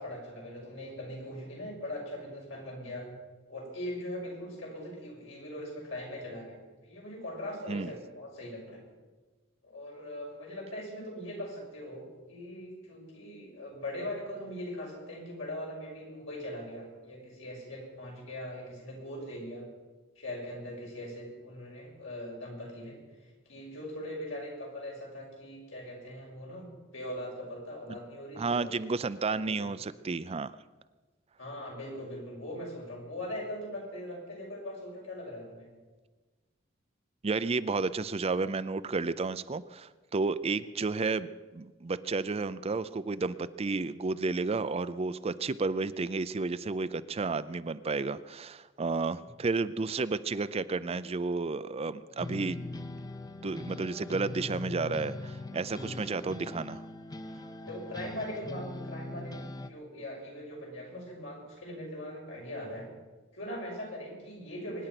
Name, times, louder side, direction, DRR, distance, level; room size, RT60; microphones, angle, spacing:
voice 1, 0.0-3.1 3.5-6.6 6.8-8.8 9.6-19.7 20.2-23.0 23.5-26.7 26.9-29.0 29.6-29.7 31.4-35.7 52.0-52.1 55.9-56.0 57.6-62.9 63.3-64.9, left 1 dB, 80° left, -2 dB, 6.2 m, -41 dB
voice 2, 28.4-30.5 37.2-52.6 53.4-56.8, right 3 dB, 30° right, 14 dB, 0.5 m, -32 dB
sound 1, 52.2-59.7, left 2 dB, 20° left, 0.7 m, -41 dB
24.0 x 10.0 x 6.0 m, 1.3 s
head